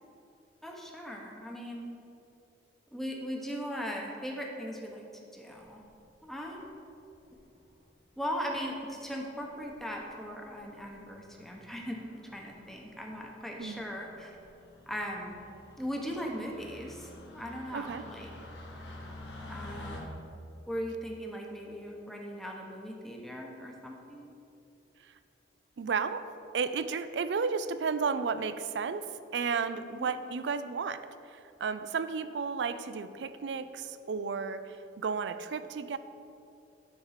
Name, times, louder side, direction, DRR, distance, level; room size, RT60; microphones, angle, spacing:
voice 1, 0.6-1.9 2.9-5.0 5.3-5.8 6.2-6.8 8.2-14.4 14.9-15.4 15.8-18.3 19.5-20.1 20.7-24.4 29.9-30.1, equal, ahead, 0 dB, 0.9 m, -39 dB
sound 1, 5.8-6.3 7.3-7.7 8.6-8.7 8.8-8.9 9.2-9.3 9.6-9.9 10.4-10.6 10.9-20.0, left 2 dB, 85° left, 1.3 m, -49 dB
voice 2, 17.7-18.0 25.8-26.3 26.5-36.0, right 5 dB, 75° right, 12 dB, 0.4 m, -33 dB
9.6 x 4.6 x 5.7 m, 2.6 s
head